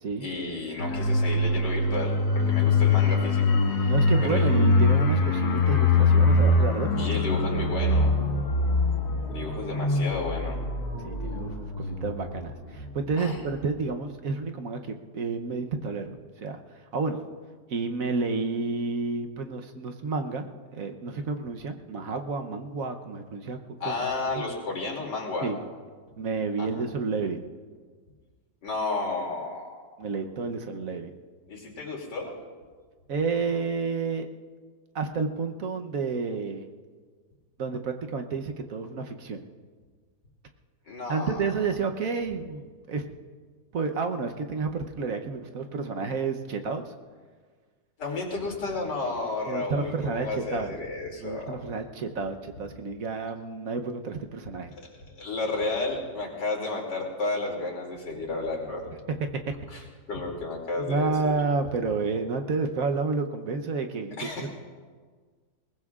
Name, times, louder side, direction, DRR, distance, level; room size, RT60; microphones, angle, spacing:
voice 1, 0.2-3.9 4.2-4.5 7.0-8.1 9.3-10.6 13.2-13.4 23.8-25.5 26.6-26.8 28.6-29.8 31.5-32.3 40.9-41.4 48.0-51.6 54.7-58.8 59.7-59.8 60.1-61.4 64.2-64.5, left 3 dB, 85° left, -1 dB, 3.3 m, -32 dB
sound 1, 0.8-13.1 13.4-13.6, left 3 dB, 65° left, 2.1 m, -23 dB
voice 2, 3.9-7.3 11.0-17.2 17.7-20.5 20.7-23.6 23.8-23.9 24.3-24.4 25.4-25.6 26.2-27.4 30.0-31.1 33.1-34.3 34.9-36.7 37.6-39.4 41.1-43.0 43.7-46.9 49.5-50.7 51.2-54.7 60.8-64.5, right 4 dB, 60° right, 5 dB, 1.2 m, -30 dB
22.0 x 19.5 x 2.4 m, 1.5 s
omnidirectional pair, 1.8 m